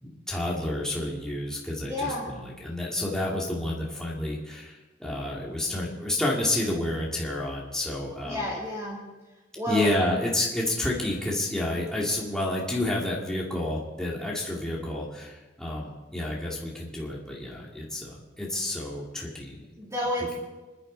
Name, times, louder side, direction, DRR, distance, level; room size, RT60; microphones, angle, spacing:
voice 1, 0.0-8.4 9.7-19.6, left 1 dB, 5° left, -4 dB, 2.4 m, -30 dB
voice 2, 1.8-2.3 8.2-9.0 9.5-9.9 19.8-20.4, left 1 dB, 15° right, -6 dB, 2.9 m, -30 dB
26.0 x 11.0 x 4.0 m, 1.2 s
head